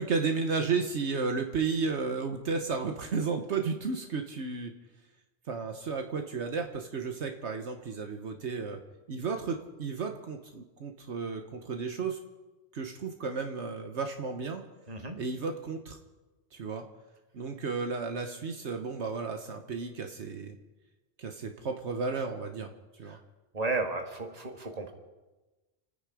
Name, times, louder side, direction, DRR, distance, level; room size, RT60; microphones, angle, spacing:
voice 1, 0.0-4.7 5.5-8.8 9.1-12.2 12.7-14.6 15.2-16.0 16.5-16.9 17.3-20.6 21.2-22.7 23.0-23.2, right 4 dB, 70° right, 5 dB, 1.4 m, -33 dB
voice 2, 14.9-15.2 23.0-23.2 23.5-24.9, right 3 dB, 35° right, 4 dB, 1.9 m, -33 dB
28.5 x 9.8 x 4.9 m, 1.1 s
omnidirectional pair, 1.2 m